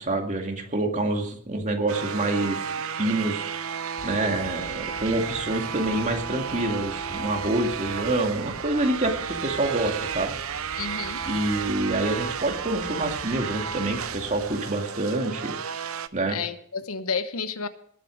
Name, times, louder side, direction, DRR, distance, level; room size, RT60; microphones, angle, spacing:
voice 1, 0.0-2.6 2.9-3.4 4.0-10.3 11.3-15.6 16.1-16.4, right 2 dB, 35° right, 3 dB, 2.2 m, -27 dB
sound 1, 1.9-16.1, right 7 dB, 70° right, 0.7 m, -33 dB
sound 2, 4.0-14.6, right 1 dB, 50° right, 1.9 m, -45 dB
voice 2, 10.8-11.2 16.3-17.7, left 5 dB, 80° left, 11 dB, 1.1 m, -31 dB
19.0 x 8.3 x 6.4 m, 0.66 s
head